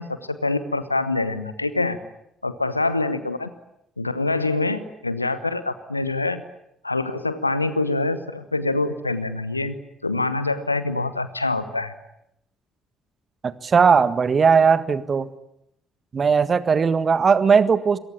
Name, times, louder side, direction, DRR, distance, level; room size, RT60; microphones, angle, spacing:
voice 1, 0.0-2.0 2.4-3.5 4.0-6.4 6.8-9.7 10.0-11.9, left 2 dB, 90° left, 13 dB, 1.1 m, -25 dB
voice 2, 13.4-15.3 16.1-18.0, right 6 dB, 40° right, 14 dB, 1.6 m, -18 dB
27.0 x 23.0 x 8.9 m, 0.79 s
figure-of-eight pair, 40°, 0 cm